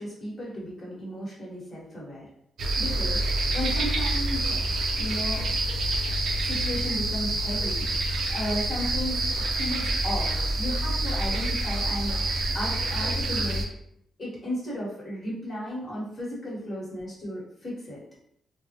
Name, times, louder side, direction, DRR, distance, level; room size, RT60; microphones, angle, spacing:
voice 1, 0.0-2.2 2.8-3.2 3.5-4.6 5.0-5.4 6.4-7.9 8.3-9.3 9.6-13.7 14.2-18.0, equal, 30° left, -7 dB, 1.2 m, -34 dB
sound 1, 2.6-13.6, right 1 dB, 65° right, 0.4 m, -27 dB
3.4 x 2.0 x 2.8 m, 0.72 s
wide cardioid pair, 180°, 0 cm